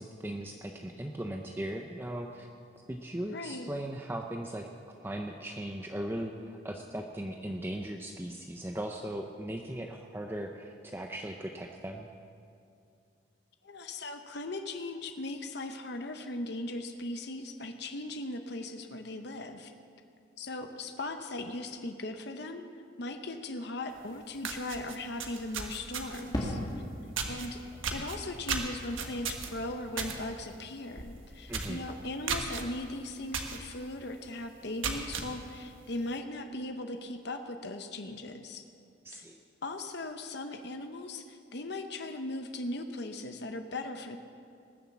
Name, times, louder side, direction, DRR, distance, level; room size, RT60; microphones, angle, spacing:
voice 1, 0.0-2.5 2.9-12.1 31.5-31.8 39.0-39.4, right 1 dB, 10° right, 2 dB, 0.6 m, -38 dB
voice 2, 3.3-3.7 13.6-19.7 20.4-22.7 23.0-26.6 27.3-27.6 27.9-38.6 39.1-39.2 39.6-44.2, left 2 dB, 55° left, 6 dB, 0.8 m, -38 dB
sound 1, 24.0-24.1 24.4-26.3 27.2-27.5 27.8-30.2 30.5-30.8 31.1-31.2 31.5-31.8 32.3-32.6 33.3-33.6 34.0-34.1 34.6-35.3, right 5 dB, 90° right, 1.4 m, -34 dB
Fireworks, 26.3-30.7 30.9-31.7, left 1 dB, 20° left, 2.0 m, -40 dB
19.5 x 7.3 x 7.2 m, 2.5 s
head